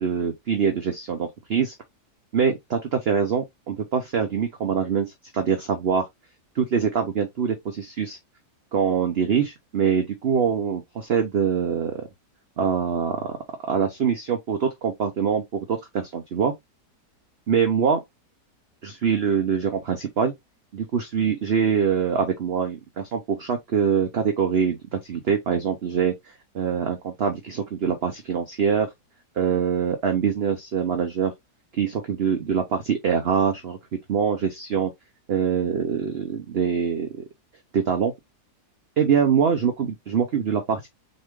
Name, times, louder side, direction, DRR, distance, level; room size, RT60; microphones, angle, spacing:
voice 1, 0.0-1.7 2.3-5.1 5.3-6.0 6.6-8.2 8.7-12.1 12.6-13.2 13.7-16.5 17.5-18.0 18.8-20.3 20.7-26.1 26.5-28.9 29.4-31.3 31.7-33.8 34.1-34.9 35.3-37.2 37.7-38.1 39.0-40.9, right 7 dB, 50° right, 0.8 m, -24 dB
4.4 x 3.5 x 3.1 m
omnidirectional pair, 1.7 m